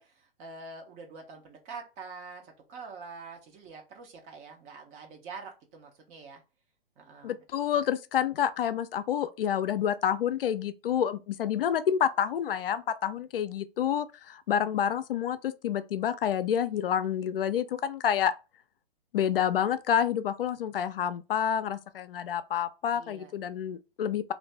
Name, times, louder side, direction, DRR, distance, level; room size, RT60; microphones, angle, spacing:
voice 1, 0.0-6.4 7.0-7.4 22.9-23.3, right 4 dB, 25° right, 0.7 m, -45 dB
voice 2, 7.2-18.3 19.1-24.3, left 9 dB, 70° left, 0.5 m, -28 dB
2.6 x 2.5 x 3.2 m
hypercardioid pair, 125°, 29 cm